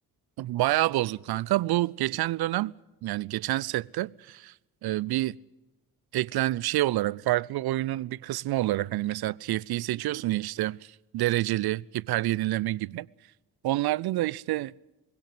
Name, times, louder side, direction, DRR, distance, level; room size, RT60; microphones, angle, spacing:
voice 1, 0.4-2.7 3.0-4.5 4.8-5.3 6.1-10.8 11.1-13.1 13.6-14.7, right 16 dB, 55° right, 0.7 m, -27 dB
21.5 x 17.0 x 7.9 m
hypercardioid pair, 40°, 46 cm